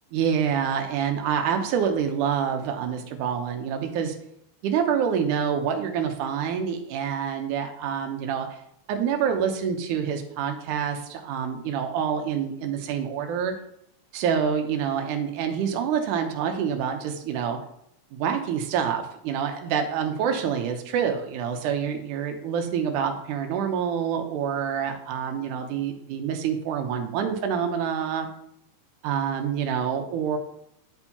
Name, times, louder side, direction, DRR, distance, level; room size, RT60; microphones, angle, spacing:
voice 1, 0.1-4.2 4.6-8.6 8.9-13.5 14.1-17.6 18.1-28.3 29.0-30.4, right 7 dB, 80° right, 5 dB, 2.2 m, -27 dB
10.5 x 4.4 x 2.8 m, 0.74 s
omnidirectional pair, 3.6 m